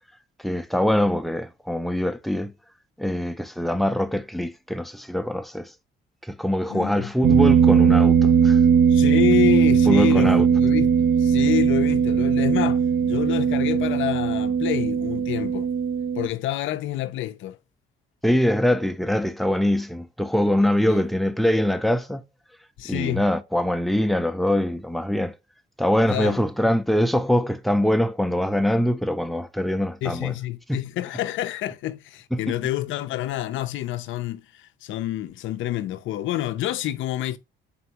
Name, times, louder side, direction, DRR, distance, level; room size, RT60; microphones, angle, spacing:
voice 1, 0.4-2.5 3.0-5.7 6.3-8.6 9.9-10.5 18.2-22.2 22.9-25.3 25.8-30.3 30.7-30.8 32.3-32.4, left 1 dB, ahead, 0.4 m, -23 dB
voice 2, 6.7-7.1 8.9-15.7 16.2-17.6 20.9-21.0 22.8-23.2 26.1-26.4 30.0-37.4, left 14 dB, 75° left, 0.4 m, -28 dB
sound 1, 7.2-16.3, right 7 dB, 50° right, 0.6 m, -19 dB
4.1 x 3.4 x 2.8 m
cardioid pair, 90°, 20 cm